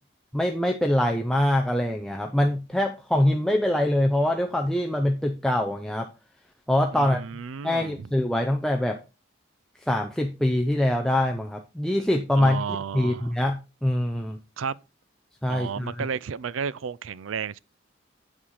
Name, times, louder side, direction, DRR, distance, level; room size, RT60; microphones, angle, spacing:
voice 1, 0.3-6.1 6.7-7.2 7.6-9.0 9.8-12.6 12.9-14.4 15.4-16.1, left 1 dB, 5° left, 0.6 m, -24 dB
voice 2, 6.9-8.1 12.3-13.3 14.6-14.8 15.5-17.6, right 6 dB, 80° right, 0.4 m, -32 dB
8.8 x 5.5 x 4.9 m
head